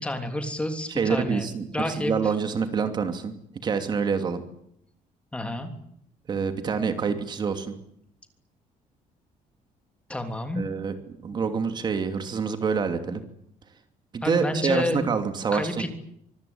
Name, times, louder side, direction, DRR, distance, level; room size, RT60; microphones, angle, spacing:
voice 1, 0.0-1.5 1.7-2.1 5.3-5.7 10.1-10.7 14.2-15.0 15.5-15.9, left 1 dB, 10° left, 7 dB, 3.3 m, -29 dB
voice 2, 0.9-3.3 3.6-4.4 6.3-7.7 10.5-10.9 11.2-13.2 14.1-15.9, right 5 dB, 30° right, 8 dB, 2.8 m, -26 dB
25.5 x 23.5 x 8.8 m, 0.72 s
cardioid pair, 170°, 14 cm